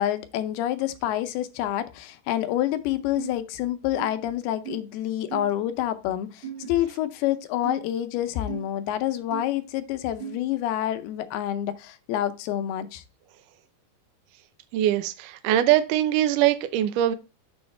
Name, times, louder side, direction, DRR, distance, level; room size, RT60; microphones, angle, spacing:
voice 1, 0.0-13.0, left 12 dB, 80° left, 2.5 m, -28 dB
sound 1, 3.2-3.3 4.0-4.1 4.6-4.8 5.3-5.5 6.4-6.7 7.6-7.8 8.5-8.6 9.3-9.4 10.2-10.4, right 9 dB, 35° right, 1.2 m, -36 dB
voice 2, 14.7-17.1, right 12 dB, 85° right, 1.9 m, -22 dB
7.1 x 6.1 x 3.1 m
omnidirectional pair, 4.6 m